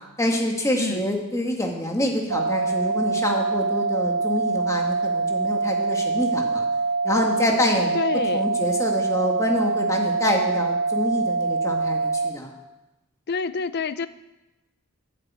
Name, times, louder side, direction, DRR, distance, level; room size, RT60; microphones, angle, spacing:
voice 1, 0.2-6.7 7.0-8.0 8.3-12.5, left 1 dB, 15° left, 1 dB, 1.8 m, -26 dB
sound 1, 2.3-12.3, right 4 dB, 85° right, 1.4 m, -24 dB
voice 2, 7.9-8.5 13.3-14.1, left 5 dB, 50° left, 14 dB, 0.5 m, -27 dB
9.8 x 8.5 x 8.6 m, 1.0 s
head